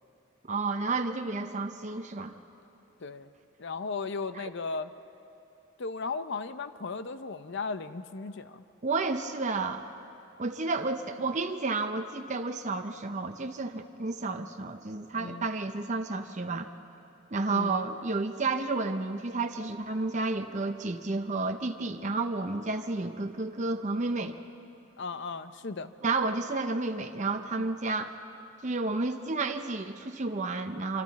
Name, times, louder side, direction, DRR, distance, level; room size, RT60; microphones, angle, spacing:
voice 1, 0.5-2.3 4.3-4.5 8.8-9.8 10.4-16.7 17.3-24.4 26.0-28.1 28.6-31.0, right 3 dB, 35° right, 5 dB, 0.7 m, -31 dB
voice 2, 3.0-3.3 3.6-4.9 5.8-8.6 15.2-15.5 17.5-17.8 25.0-25.9 27.5-27.7, left 4 dB, 60° left, 11 dB, 0.6 m, -36 dB
26.0 x 25.5 x 4.2 m, 3.0 s
head